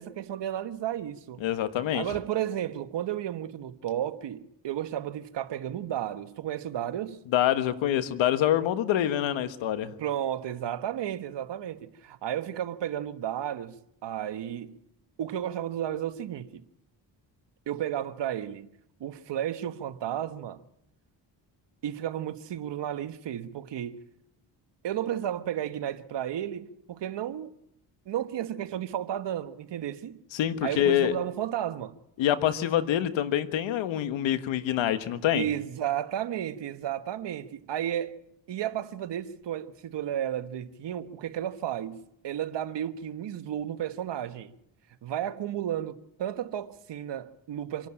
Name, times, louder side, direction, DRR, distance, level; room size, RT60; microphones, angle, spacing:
voice 1, 0.0-1.4 1.9-7.2 10.0-14.8 15.2-16.6 17.7-18.7 19.0-20.6 21.8-24.0 24.8-27.5 28.1-30.2 30.6-31.9 35.3-38.2 38.5-44.5 45.0-47.9, right 11 dB, 70° right, 1.4 m, -33 dB
voice 2, 1.4-2.0 7.3-9.9 30.3-31.1 32.2-35.5, left 11 dB, 90° left, 1.5 m, -26 dB
25.5 x 12.0 x 8.8 m
cardioid pair, 85°, 44 cm